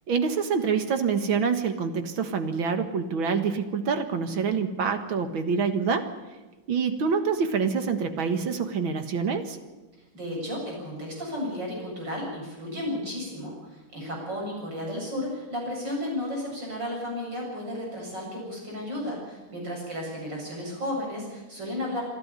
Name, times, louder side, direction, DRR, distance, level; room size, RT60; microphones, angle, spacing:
voice 1, 0.1-6.1 6.7-9.6, right 5 dB, 80° right, 8 dB, 2.4 m, -26 dB
voice 2, 10.1-22.0, left 1 dB, 60° right, -2 dB, 8.2 m, -33 dB
27.0 x 11.5 x 9.6 m, 1.2 s
omnidirectional pair, 2.2 m